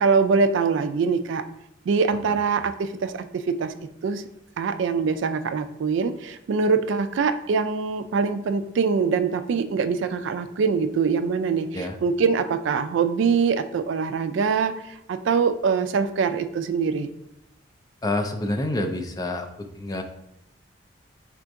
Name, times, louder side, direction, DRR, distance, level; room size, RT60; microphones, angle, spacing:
voice 1, 0.0-1.4 1.9-3.7 4.0-4.2 4.6-11.7 12.0-17.1, right 5 dB, 65° right, 11 dB, 0.3 m, -23 dB
voice 2, 2.3-2.6 11.7-11.9 18.0-20.0, left 1 dB, 20° left, 4 dB, 0.3 m, -28 dB
4.3 x 2.6 x 4.5 m, 0.79 s
head